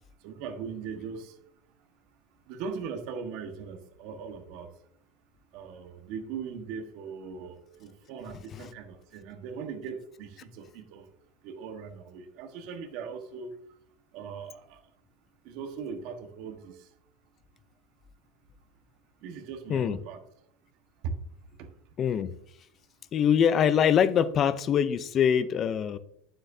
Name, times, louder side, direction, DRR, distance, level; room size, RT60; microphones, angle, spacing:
voice 1, 0.2-1.4 2.5-4.7 5.5-11.1 11.4-13.5 14.1-14.8 15.4-16.9 19.2-20.2 21.0-21.1 21.6-21.7, right 6 dB, 60° right, 5 dB, 1.4 m, -39 dB
voice 2, 8.3-8.7 19.7-20.0 22.0-22.3 23.1-26.0, left 8 dB, 30° left, 14 dB, 0.5 m, -24 dB
9.3 x 7.5 x 2.7 m, 0.72 s
supercardioid pair, 145°, 0 cm